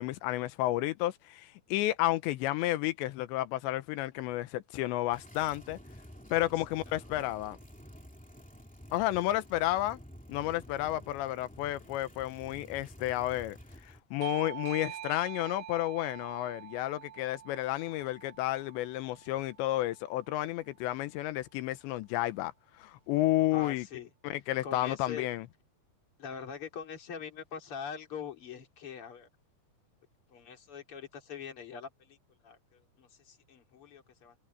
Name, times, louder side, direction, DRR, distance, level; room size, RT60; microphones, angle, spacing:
voice 1, 0.0-5.8 6.3-7.6 8.9-10.0 10.3-13.6 13.8-22.5 22.8-23.9 24.2-25.5, left 16 dB, 90° left, 3.2 m, -31 dB
sound 1, 5.1-14.0, equal, 5° left, 1.5 m, -51 dB
Bell / Doorbell, 14.2-19.4, right 12 dB, 70° right, 2.8 m, -45 dB
voice 2, 23.5-24.1 24.6-25.3 26.2-29.3 30.3-32.2 32.4-34.3, left 7 dB, 35° left, 3.5 m, -43 dB
omnidirectional pair, 5.0 m